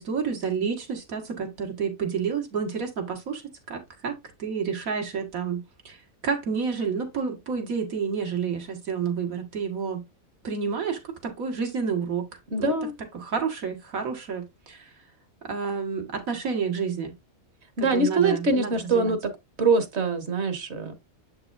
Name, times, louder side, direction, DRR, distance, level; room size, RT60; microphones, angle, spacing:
voice 1, 0.0-3.4 3.7-4.1 4.4-6.0 6.2-10.0 10.4-12.3 12.6-12.7 13.1-14.9 15.4-17.1 17.8-19.1, right 6 dB, 80° right, 1.9 m, -29 dB
voice 2, 12.5-12.9 17.8-19.3 19.6-20.9, right 3 dB, 55° right, 1.3 m, -24 dB
7.5 x 6.0 x 2.5 m
omnidirectional pair, 1.5 m